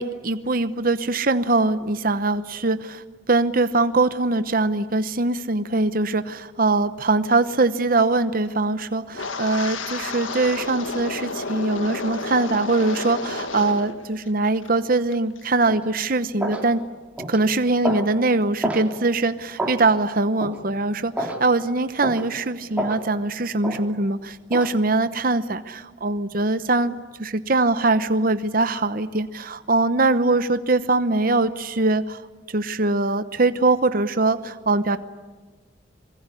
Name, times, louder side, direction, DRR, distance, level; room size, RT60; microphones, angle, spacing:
voice 1, 0.0-16.8 17.3-32.2 32.5-35.0, right 2 dB, 45° right, 11 dB, 0.9 m, -22 dB
Wind, 9.1-14.0 14.3-14.7 15.1-15.4, left 3 dB, 90° left, 1.8 m, -31 dB
sound 1, 15.7-15.8 16.4-16.6 17.2-17.4 17.8-18.1 18.6-18.9 19.6-19.8 20.4-20.6 21.2-21.4 22.0-22.2 22.8-23.0 23.6-23.8 24.5-24.7, right 1 dB, 5° right, 3.3 m, -28 dB
25.5 x 22.5 x 9.8 m, 1.3 s
head